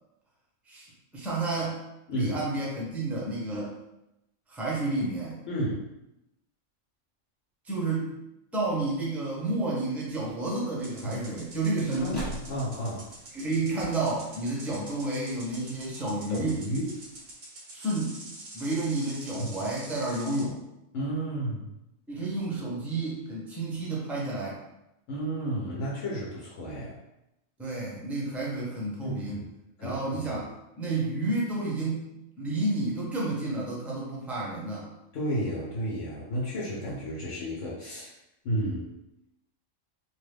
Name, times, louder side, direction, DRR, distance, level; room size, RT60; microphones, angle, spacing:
voice 1, 0.7-1.8 2.1-3.7 4.5-5.4 7.6-8.1 8.5-12.3 13.3-16.6 17.7-18.3 18.5-20.6 22.1-24.6 27.6-29.4 29.8-30.5 30.8-34.9, right 2 dB, ahead, -4 dB, 0.4 m, -30 dB
voice 2, 5.5-5.8 11.0-11.1 12.0-13.1 16.3-16.9 19.4-19.6 20.9-21.7 25.1-27.0 29.0-29.4 29.8-30.4 35.1-38.1 38.4-38.9, equal, 75° left, -5 dB, 1.0 m, -32 dB
sound 1, 10.0-17.4, equal, 20° left, 1.2 m, -48 dB
sound 2, 10.8-20.5, right 2 dB, 50° right, 0.7 m, -46 dB
2.9 x 2.2 x 3.3 m, 0.87 s
omnidirectional pair, 1.3 m